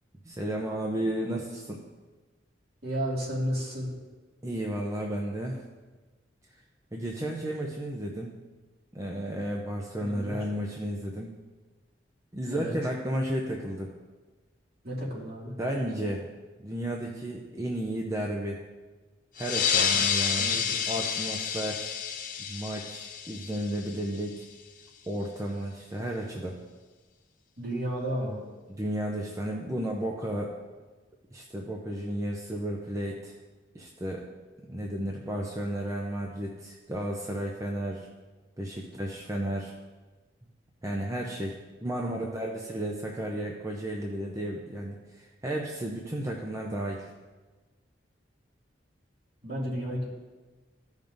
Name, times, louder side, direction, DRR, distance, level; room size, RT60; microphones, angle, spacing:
voice 1, 0.2-1.8 4.4-5.6 6.9-8.4 8.9-11.3 12.3-13.9 15.6-16.3 16.6-18.6 19.4-20.5 20.9-21.9 22.5-24.4 25.1-26.6 28.7-30.5 31.3-33.3 33.7-34.3 34.7-38.1 38.6-39.7 40.8-41.5 41.8-47.1, right 1 dB, 15° right, -1 dB, 0.6 m, -33 dB
voice 2, 2.8-4.0 10.0-10.4 12.5-12.8 14.8-15.6 20.2-20.8 27.6-28.4 42.1-42.4 49.4-50.1, equal, 55° right, -4 dB, 2.2 m, -33 dB
sound 1, 19.4-24.4, left 7 dB, 45° left, 0.6 m, -29 dB
14.5 x 5.2 x 2.6 m, 1.3 s
head